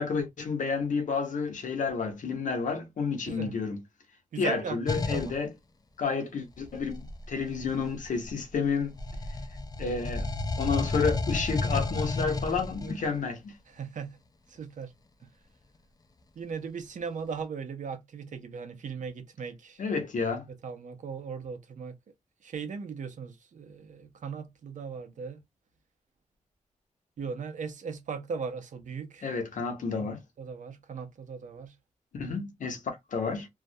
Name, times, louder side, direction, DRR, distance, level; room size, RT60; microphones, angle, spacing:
voice 1, 0.0-3.8 4.4-5.5 6.0-9.0 9.8-10.3 10.6-13.6 19.8-20.4 29.2-30.2 32.1-33.5, left 5 dB, 80° left, 0.7 m, -30 dB
voice 2, 4.3-5.3 13.7-14.2 14.5-14.9 16.4-19.8 20.6-21.9 22.4-25.4 27.2-29.3 30.0-31.7, right 5 dB, 75° right, 0.6 m, -38 dB
sound 1, 4.9-5.4 6.7-8.6 9.0-13.1, left 3 dB, 30° left, 0.4 m, -32 dB
2.3 x 2.0 x 2.6 m
wide cardioid pair, 100°, 13 cm